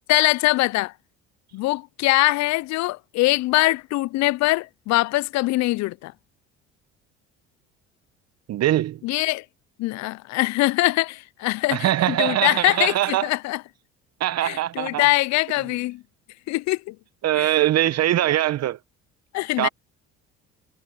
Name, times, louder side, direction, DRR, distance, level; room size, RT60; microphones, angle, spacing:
voice 1, 0.1-0.9 1.5-6.1 9.0-9.4 9.8-11.9 12.2-13.6 14.4-16.0 16.5-17.0 17.4-17.5 19.3-19.7, left 20 dB, 60° left, 0.6 m, -22 dB
voice 2, 8.5-9.0 11.7-13.3 14.2-15.1 17.2-18.8 19.6-19.7, right 13 dB, 55° right, 1.0 m, -22 dB
hypercardioid pair, 70°, 31 cm